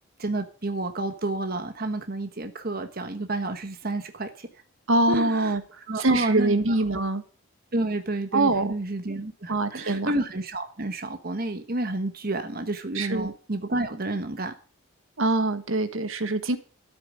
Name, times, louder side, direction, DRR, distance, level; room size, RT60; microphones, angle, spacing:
voice 1, 0.2-4.6 5.1-5.6 5.9-7.0 7.7-14.5, right 2 dB, 45° right, 1.2 m, -30 dB
voice 2, 4.9-5.6 6.0-7.2 8.3-8.7 9.5-10.1 12.9-13.3 15.2-16.6, right 2 dB, 65° right, 1.5 m, -23 dB
13.0 x 8.7 x 5.2 m
head